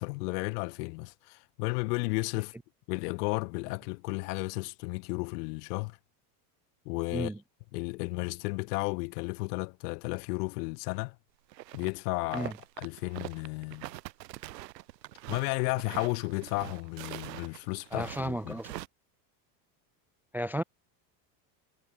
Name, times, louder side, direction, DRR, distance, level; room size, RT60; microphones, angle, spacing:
voice 1, 0.0-2.5 2.9-6.0 6.8-7.3 7.7-11.2 11.7-12.5 12.8-13.9 15.3-18.6, left 27 dB, 70° left, 1.0 m, -33 dB
sound 1, 11.5-11.9 12.2-18.9, right 17 dB, 85° right, 7.0 m, -44 dB
voice 2, 17.9-18.7 20.3-20.6, right 1 dB, 5° right, 0.4 m, -33 dB
supercardioid pair, 125°, 48 cm